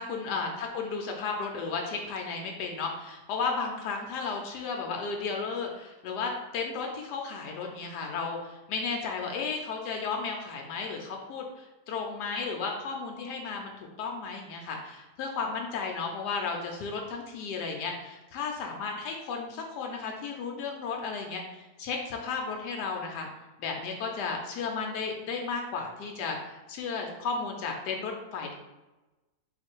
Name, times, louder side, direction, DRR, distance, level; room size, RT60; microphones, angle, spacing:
voice 1, 0.0-13.7 14.0-23.3 23.6-28.5, left 4 dB, 85° left, 1 dB, 1.2 m, -34 dB
3.9 x 2.5 x 4.3 m, 1.1 s
omnidirectional pair, 1.7 m